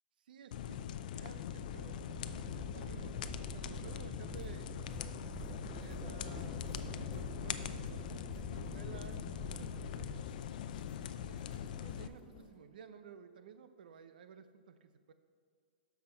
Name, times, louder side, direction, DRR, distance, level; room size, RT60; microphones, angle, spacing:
voice 1, 0.3-0.9 1.1-4.8 5.5-8.0 8.4-10.3 11.2-15.1, right 7 dB, 75° right, 10 dB, 0.7 m, -55 dB
sound 1, 0.5-12.1, left 9 dB, 60° left, 0.5 m, -42 dB
sound 2, 1.5-10.2, right 5 dB, 15° right, 0.4 m, -49 dB
sound 3, 4.3-12.6, left 4 dB, 40° left, 1.9 m, -62 dB
12.0 x 5.9 x 4.4 m, 2.1 s
hypercardioid pair, 135°, 5 cm